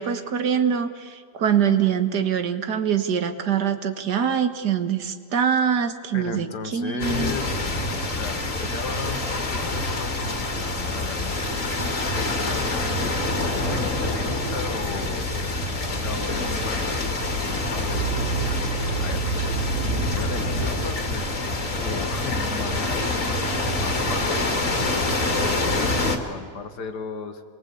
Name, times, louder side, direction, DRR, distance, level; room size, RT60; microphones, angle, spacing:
voice 1, 0.0-7.3, right 8 dB, 75° right, 8 dB, 2.0 m, -24 dB
voice 2, 6.1-7.6 8.1-9.2 9.5-11.4 12.2-15.3 15.9-19.3 20.0-23.2 23.5-27.4, left 5 dB, 80° left, 8 dB, 2.2 m, -36 dB
sound 1, 7.0-26.2, left 2 dB, 50° left, 2.7 m, -26 dB
sound 2, 13.3-20.7, right 5 dB, 40° right, 2.6 m, -32 dB
27.5 x 21.5 x 8.5 m, 2.1 s
omnidirectional pair, 1.8 m